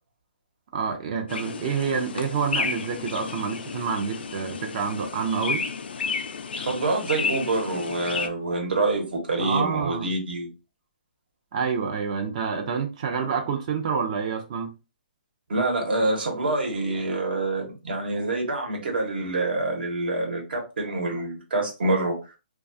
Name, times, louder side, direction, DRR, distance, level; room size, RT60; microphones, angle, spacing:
voice 1, 0.7-5.7 9.4-10.1 11.5-14.7, right 6 dB, 40° right, 0.4 m, -28 dB
sound 1, 1.3-8.3, left 5 dB, 75° left, 0.4 m, -32 dB
voice 2, 6.6-10.5 15.5-22.2, right 2 dB, 70° right, 1.1 m, -26 dB
2.3 x 2.2 x 2.6 m
hypercardioid pair, 150°, 6 cm